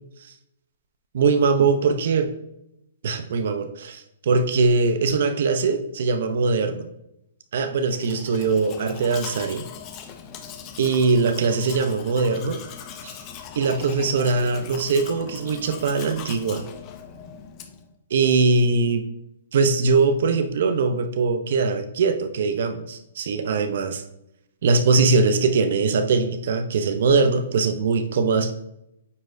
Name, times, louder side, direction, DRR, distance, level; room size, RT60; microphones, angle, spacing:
voice 1, 1.1-2.3 3.0-6.9 7.5-9.7 10.8-12.6 13.0-13.2 13.5-16.6 18.1-19.0 19.5-24.0 24.6-28.5, right 4 dB, 65° right, 8 dB, 0.7 m, -21 dB
Domestic sounds home sounds, 7.8-17.9, left 7 dB, 25° left, 0.6 m, -40 dB
9.3 x 4.2 x 2.6 m, 0.82 s
hypercardioid pair, 160°, 0 cm